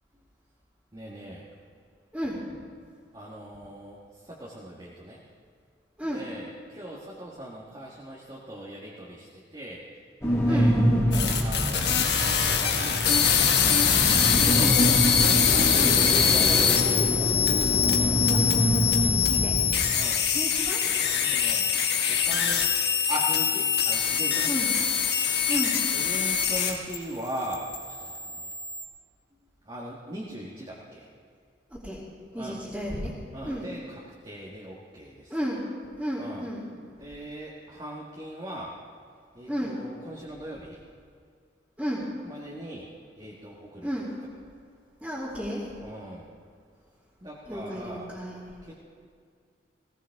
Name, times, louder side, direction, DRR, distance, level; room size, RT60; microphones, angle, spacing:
voice 1, 0.9-1.4 3.1-4.0 4.4-5.2 6.1-6.5 6.7-9.3 9.5-9.8 10.4-10.7 11.0-11.9 12.5-13.7 14.5-14.8 15.5-18.4 19.9-20.3 21.3-21.7 22.1-22.6 23.1-24.5 25.9-28.5 29.7-31.1 32.4-32.6 33.3-33.8 34.2-35.3 36.2-36.4 37.0-38.7 39.3-40.8 42.3-42.9 43.2-43.9 45.8-46.2 47.2-48.1 48.7-48.8, equal, 25° right, -5 dB, 1.7 m, -39 dB
voice 2, 6.0-6.3 10.4-10.8 14.6-14.8 15.7-16.0 19.3-19.6 20.3-20.8 24.5-24.7 25.5-25.7 31.7-32.0 32.3-33.1 33.4-33.7 35.3-35.6 36.0-36.6 39.5-39.8 41.8-42.1 43.8-44.1 45.0-45.6 47.4-48.4, equal, 5° right, -12 dB, 2.8 m, -32 dB
sound 1, 10.2-19.7, equal, 15° left, 2.4 m, -26 dB
sound 2, 11.1-26.9 27.2-28.8, left 7 dB, 60° left, 1.5 m, -24 dB
19.5 x 17.5 x 3.6 m, 2.2 s
head